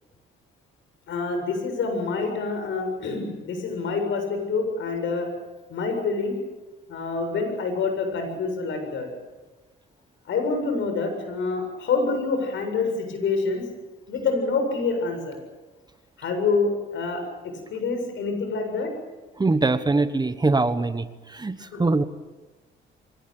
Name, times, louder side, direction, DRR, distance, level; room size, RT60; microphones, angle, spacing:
voice 1, 1.1-5.3 5.7-6.4 6.9-9.1 10.3-13.6 14.1-15.4 16.2-18.9 21.6-21.8, left 4 dB, 75° left, 5 dB, 7.6 m, -27 dB
voice 2, 19.4-21.0 21.3-21.5 21.8-22.0, right 3 dB, 20° right, 12 dB, 1.3 m, -22 dB
24.5 x 19.0 x 9.0 m, 1.2 s
cardioid pair, 90°, 20 cm